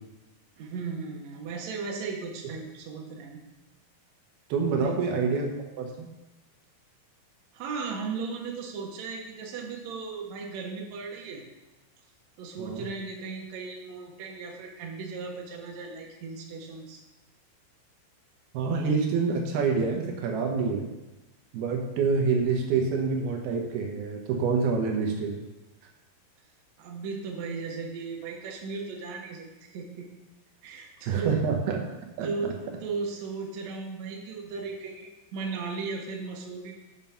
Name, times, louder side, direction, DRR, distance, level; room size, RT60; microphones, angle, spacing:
voice 1, 0.6-3.4 4.7-5.0 7.5-11.4 12.4-17.0 26.8-30.1 30.6-31.4 32.2-36.7, right 4 dB, 60° right, 0 dB, 2.1 m, -36 dB
voice 2, 4.5-6.1 12.6-12.8 18.5-20.9 21.5-25.4 31.1-31.8 32.2-32.3, right 5 dB, 80° right, 2 dB, 3.0 m, -27 dB
7.3 x 6.7 x 5.7 m, 1.1 s
omnidirectional pair, 4.4 m